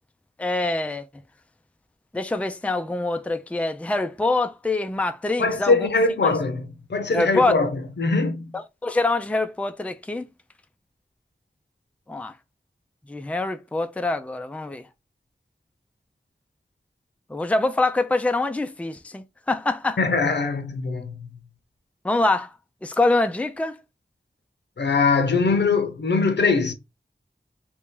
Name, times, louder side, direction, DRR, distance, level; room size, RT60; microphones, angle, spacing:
voice 1, 0.4-1.1 2.1-5.9 6.2-6.3 7.1-7.5 8.8-10.3 12.1-12.3 13.1-14.8 17.3-20.0 22.0-22.5 22.8-23.8, left 2 dB, 5° left, 0.4 m, -24 dB
voice 2, 5.4-8.5 20.0-21.3 24.8-26.7, left 4 dB, 80° left, 0.7 m, -22 dB
2.9 x 2.8 x 3.6 m
wide cardioid pair, 50°, 18 cm